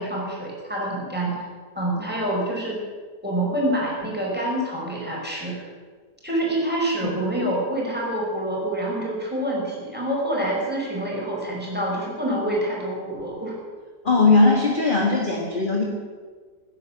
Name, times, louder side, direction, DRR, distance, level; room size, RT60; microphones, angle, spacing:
voice 1, 0.0-1.5 1.8-2.8 3.2-5.6 6.2-13.5, right 1 dB, 5° right, -3 dB, 5.2 m, -26 dB
voice 2, 14.0-15.8, left 3 dB, 30° left, 0 dB, 1.8 m, -19 dB
16.5 x 9.9 x 8.7 m, 1.5 s
omnidirectional pair, 1.7 m